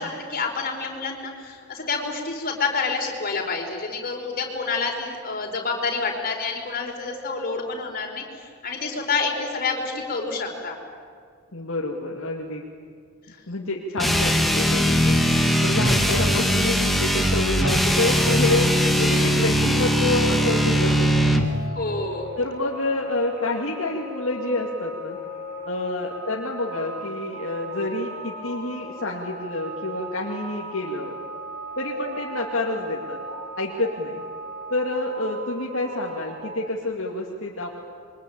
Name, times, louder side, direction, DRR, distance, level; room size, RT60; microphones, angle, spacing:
voice 1, 0.0-10.7 13.3-13.4 14.7-14.8 15.2-15.5 21.7-22.3, left 4 dB, 40° left, 1 dB, 4.7 m, -28 dB
voice 2, 11.5-12.6 13.5-15.2 15.6-21.4 22.4-25.2 25.6-31.1 31.8-33.2 33.6-34.2 34.7-37.7, left 2 dB, 60° left, -2 dB, 2.5 m, -28 dB
sound 1, 14.0-21.5, equal, ahead, 1.7 m, -20 dB
sound 2, 18.0-36.5, right 1 dB, 55° right, 6.6 m, -38 dB
27.5 x 23.5 x 8.8 m, 2.1 s
head